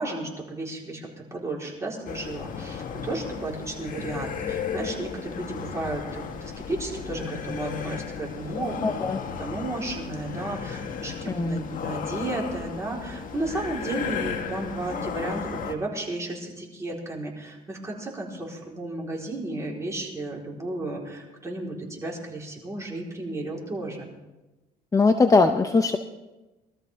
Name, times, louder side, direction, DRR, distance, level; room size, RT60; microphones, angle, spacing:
voice 1, 0.0-24.1, right 2 dB, 15° right, -3 dB, 4.2 m, -33 dB
sound 1, 2.1-15.8, left 6 dB, 55° left, 1.6 m, -34 dB
voice 2, 8.8-9.2 11.3-11.6 24.9-26.0, left 3 dB, 20° left, 6 dB, 0.7 m, -20 dB
22.0 x 13.5 x 3.6 m, 1.1 s
cardioid pair, 110°, 17 cm